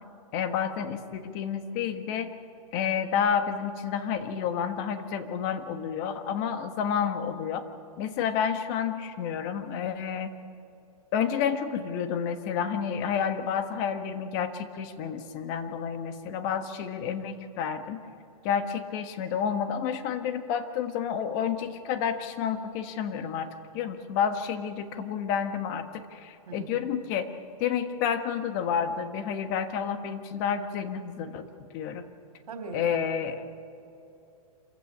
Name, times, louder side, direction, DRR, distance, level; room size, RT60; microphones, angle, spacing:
voice 1, 0.3-2.3 2.7-7.6 8.0-10.3 11.1-18.0 18.4-23.5 23.7-27.3 27.6-31.4 31.7-32.0 32.7-33.4, left 7 dB, 30° left, 8 dB, 1.5 m, -30 dB
voice 2, 26.5-26.8 32.5-33.0, right 4 dB, 80° right, 6 dB, 3.5 m, -39 dB
27.0 x 15.5 x 8.6 m, 2.8 s
hypercardioid pair, 160°, 19 cm